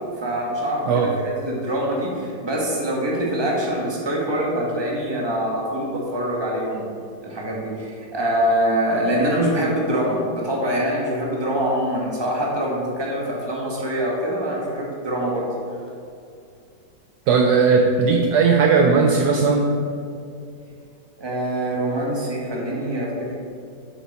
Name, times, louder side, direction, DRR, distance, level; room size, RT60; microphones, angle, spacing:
voice 1, 0.2-6.8 7.2-15.5 21.2-23.3, right 1 dB, 15° right, -3 dB, 1.2 m, -24 dB
voice 2, 17.3-19.7, right 4 dB, 70° right, 3 dB, 1.1 m, -17 dB
7.5 x 6.6 x 4.2 m, 2.4 s
omnidirectional pair, 2.0 m